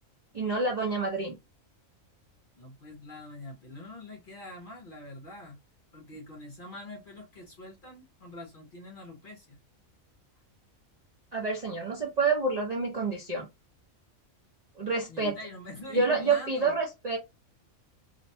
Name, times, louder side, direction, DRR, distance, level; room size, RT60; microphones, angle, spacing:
voice 1, 0.3-1.3 11.3-13.5 14.8-15.3 15.9-17.2, right 4 dB, 50° right, 0.5 m, -28 dB
voice 2, 2.6-5.6 5.9-9.6 15.1-16.8, left 2 dB, 55° left, 0.7 m, -44 dB
2.6 x 2.1 x 2.6 m
omnidirectional pair, 1.4 m